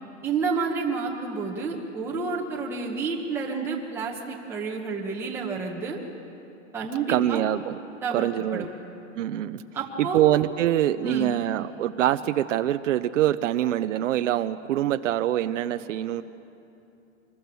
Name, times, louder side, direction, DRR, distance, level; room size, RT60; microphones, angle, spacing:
voice 1, 0.2-6.0 6.7-7.5 8.0-8.7 9.7-10.2 11.0-11.3, right 4 dB, 5° right, -3 dB, 1.2 m, -30 dB
voice 2, 7.1-7.8 8.1-8.7 9.2-9.6 10.1-16.2, right 12 dB, 85° right, 10 dB, 0.8 m, -24 dB
25.0 x 21.0 x 7.0 m, 2.7 s
supercardioid pair, 170°, 37 cm